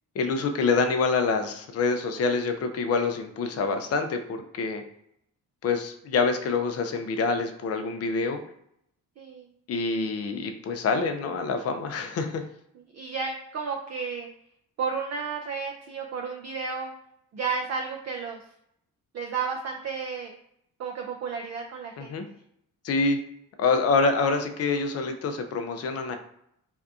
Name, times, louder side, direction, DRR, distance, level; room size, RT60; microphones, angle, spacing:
voice 1, 0.1-4.8 5.6-8.4 9.7-12.4 22.0-22.3 22.8-23.2 23.6-26.2, left 4 dB, 30° left, 6 dB, 0.5 m, -26 dB
voice 2, 9.2-9.5 12.9-14.3 14.8-16.9 17.3-18.4 19.1-20.3 20.8-22.2, right 5 dB, 35° right, 1 dB, 0.4 m, -32 dB
2.7 x 2.2 x 2.3 m, 0.73 s
hypercardioid pair, 45°, 48 cm